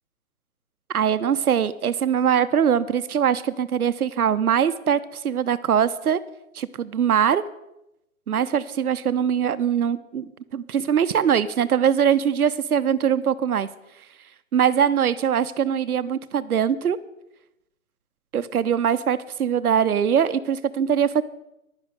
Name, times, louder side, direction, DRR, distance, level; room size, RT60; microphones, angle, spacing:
voice 1, 0.9-6.2 6.5-7.4 8.3-13.7 14.5-17.0 18.3-21.2, right 8 dB, 80° right, 14 dB, 0.9 m, -22 dB
11.0 x 10.5 x 6.5 m, 0.87 s
hypercardioid pair, 165°, 44 cm